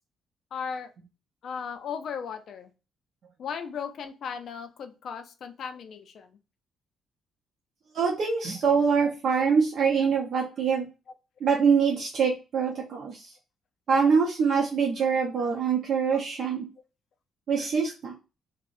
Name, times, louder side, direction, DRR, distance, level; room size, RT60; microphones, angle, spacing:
voice 1, 0.5-0.9 1.4-2.7 3.4-6.3 10.0-10.2 16.1-16.2, left 6 dB, 65° left, 9 dB, 0.4 m, -36 dB
voice 2, 7.9-10.9 11.4-13.3 13.9-16.6 17.5-18.1, right 6 dB, 60° right, -2 dB, 0.6 m, -24 dB
2.4 x 2.0 x 2.5 m, 0.30 s
cardioid pair, 90°, 0 cm